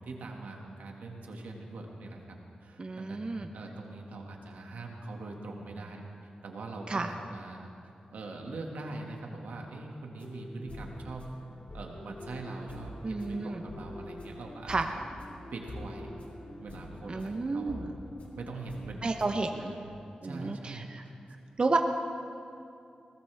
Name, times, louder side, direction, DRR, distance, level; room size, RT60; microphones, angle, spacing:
voice 1, 0.0-7.7 8.1-11.3 11.7-15.0 15.5-16.1 16.6-18.0 18.3-19.9 20.2-21.2, right 2 dB, 90° right, 1 dB, 2.0 m, -42 dB
voice 2, 2.8-3.5 6.9-7.1 13.0-13.6 14.7-14.9 17.1-17.9 19.0-19.7 20.2-21.0 21.6-21.8, right 3 dB, 40° right, 5 dB, 0.9 m, -31 dB
sound 1, 10.1-19.5, left 1 dB, 55° left, 2.4 m, -46 dB
20.5 x 18.5 x 3.5 m, 2.6 s
wide cardioid pair, 90°, 3 cm